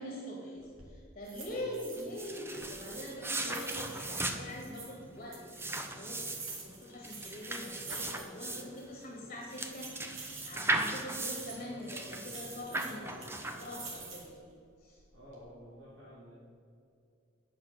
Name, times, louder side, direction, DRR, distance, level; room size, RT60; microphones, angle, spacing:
voice 1, 0.0-10.0 10.4-14.5 14.8-15.0, left 1 dB, 40° left, -2 dB, 1.7 m, -44 dB
sound 1, 0.6-0.9 1.2-2.3 2.6-4.9 5.3-8.5 8.8-8.9 9.4-11.7 12.3-14.4 14.9-15.4, right 4 dB, 85° right, 2.4 m, -47 dB
sound 2, 2.0-14.1, right 2 dB, 10° right, 0.8 m, -38 dB
voice 2, 11.4-14.2 15.1-16.3, equal, 65° right, -9 dB, 2.8 m, -53 dB
9.6 x 6.1 x 6.6 m, 2.5 s
head